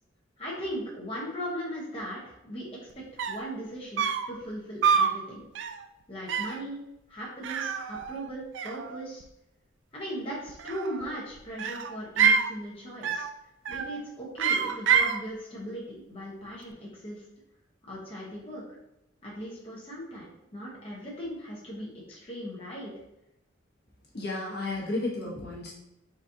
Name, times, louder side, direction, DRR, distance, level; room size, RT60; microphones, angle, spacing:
voice 1, 0.4-2.7 2.9-5.5 6.1-6.8 7.1-9.2 9.9-13.3 13.7-17.2 17.9-18.8 19.2-22.9, equal, 30° left, -5 dB, 1.0 m, -38 dB
sound 1, 2.9-3.0 3.2-3.5 4.0-4.3 4.8-5.2 5.5-5.8 6.3-6.6 7.4-8.3 8.5-9.3 10.5-11.1 11.6-12.5 13.0-13.3 13.6-14.0 14.4-15.2, right 6 dB, 65° right, 0.3 m, -27 dB
voice 2, 24.1-25.7, left 2 dB, 55° left, -3 dB, 1.2 m, -32 dB
4.0 x 4.0 x 2.7 m, 0.85 s
head